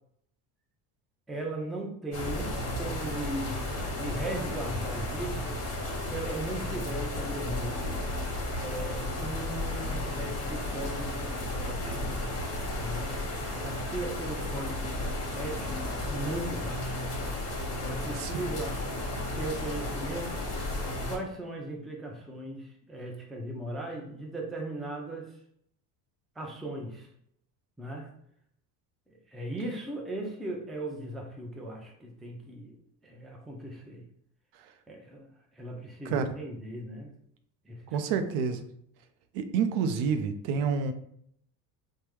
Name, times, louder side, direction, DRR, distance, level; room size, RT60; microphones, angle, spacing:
voice 1, 1.3-2.5 2.7-5.5 6.0-8.0 8.6-11.3 11.6-12.1 12.7-13.1 13.5-15.1 15.4-16.9 17.8-18.8 19.4-20.4 20.9-25.3 26.4-27.1 27.8-28.1 29.1-32.8 33.0-34.0 34.9-35.3 35.6-37.1 37.6-38.2, right 1 dB, ahead, 0 dB, 0.3 m, -38 dB
sound 1, 2.1-21.2, left 1 dB, 30° left, 1.2 m, -33 dB
voice 2, 37.9-38.6 39.3-40.9, right 6 dB, 65° right, 8 dB, 0.6 m, -28 dB
3.3 x 2.1 x 3.1 m, 0.69 s
supercardioid pair, 90°, 48 cm